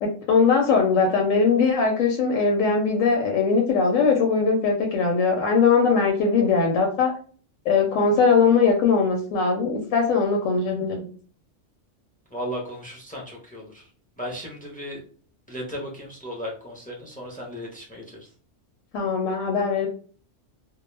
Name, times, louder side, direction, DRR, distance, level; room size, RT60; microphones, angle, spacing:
voice 1, 0.0-7.1 7.7-11.0 18.9-19.9, left 5 dB, 85° left, 2 dB, 1.0 m, -20 dB
voice 2, 12.3-13.9 14.2-15.0 15.5-18.3, equal, 10° left, -2 dB, 0.4 m, -35 dB
2.2 x 2.1 x 3.1 m, 0.42 s
omnidirectional pair, 1.3 m